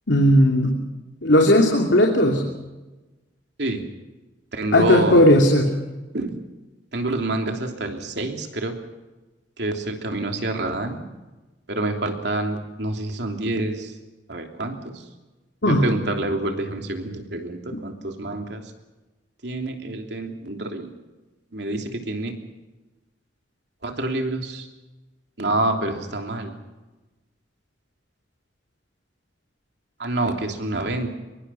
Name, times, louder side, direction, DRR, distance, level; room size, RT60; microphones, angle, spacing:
voice 1, 0.1-0.8 1.2-2.5 4.7-5.7 15.6-15.8, left 1 dB, 85° left, 1 dB, 2.8 m, -16 dB
voice 2, 4.5-5.2 6.1-6.3 6.9-8.7 9.6-11.0 11.7-13.9 14.3-15.0 15.6-18.6 19.4-20.9 21.5-22.3 23.8-24.7 25.4-26.5 30.0-31.1, right 2 dB, 65° right, 3 dB, 3.2 m, -27 dB
24.5 x 22.5 x 5.8 m, 1.1 s
head